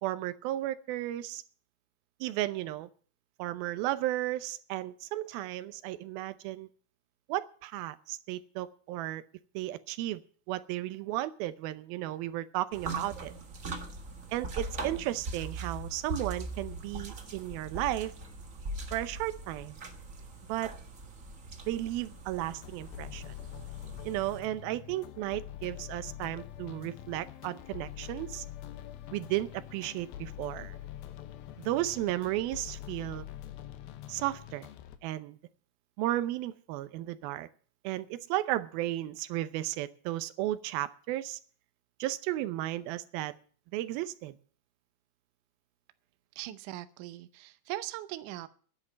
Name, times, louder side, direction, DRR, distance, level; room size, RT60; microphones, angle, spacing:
voice 1, 0.0-1.4 2.2-2.9 3.4-6.7 7.3-9.2 9.5-10.2 10.5-13.3 14.3-18.1 18.9-19.8 20.5-20.7 21.7-23.4 24.0-28.5 29.1-30.8 31.6-33.3 34.1-34.7 35.0-35.4 36.0-37.5 37.8-41.4 42.0-43.3 43.7-44.4, right 15 dB, 90° right, 14 dB, 2.7 m, -34 dB
sound 1, 12.7-24.4, right 2 dB, 55° right, 0.8 m, -41 dB
sound 2, 22.4-35.0, left 12 dB, 85° left, 2.9 m, -45 dB
voice 2, 46.4-48.5, right 15 dB, 75° right, 12 dB, 2.1 m, -40 dB
10.5 x 9.7 x 9.2 m, 0.44 s
omnidirectional pair, 4.2 m